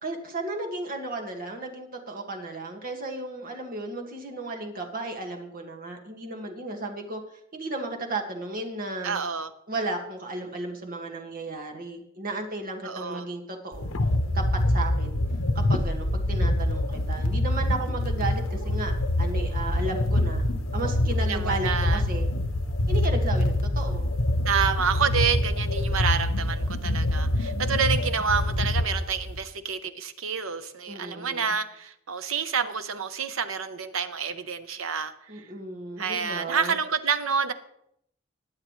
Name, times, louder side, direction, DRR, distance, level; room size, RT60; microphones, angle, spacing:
voice 1, 0.0-7.2 7.5-9.2 9.7-13.9 14.3-15.2 15.6-20.4 20.7-22.3 22.9-24.1 30.9-31.5 35.3-36.7, right 2 dB, 45° right, 2.0 m, -34 dB
voice 2, 9.0-9.5 12.8-13.2 21.2-22.0 24.4-35.5 36.0-37.5, right 6 dB, 70° right, 1.0 m, -28 dB
sound 1, 13.7-29.4, left 1 dB, 75° left, 1.2 m, -25 dB
20.5 x 8.7 x 3.2 m
head